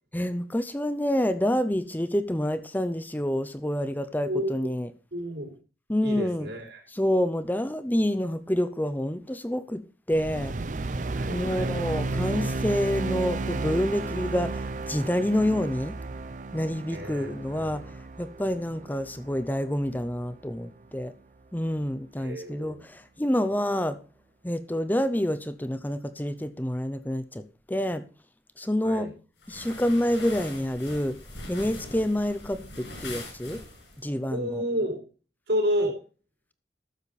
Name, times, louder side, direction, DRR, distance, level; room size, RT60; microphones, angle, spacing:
voice 1, 0.1-4.9 5.9-6.5 6.9-9.8 10.1-10.5 11.3-15.9 16.5-17.8 18.2-21.1 21.5-24.0 24.4-28.0 28.6-29.1 29.5-31.2 31.5-33.6 34.0-34.6, equal, 10° left, 0.7 m, -28 dB
voice 2, 4.2-4.7 5.1-5.6 6.0-6.8 11.1-11.8 16.9-17.8 22.2-22.8 28.8-29.1 34.3-35.1 35.5-36.0, equal, 75° right, 4.5 m, -31 dB
sound 1, 10.1-20.6, right 3 dB, 45° right, 0.5 m, -33 dB
sound 2, 29.4-34.0, left 2 dB, 80° left, 6.8 m, -42 dB
13.0 x 7.2 x 4.2 m
head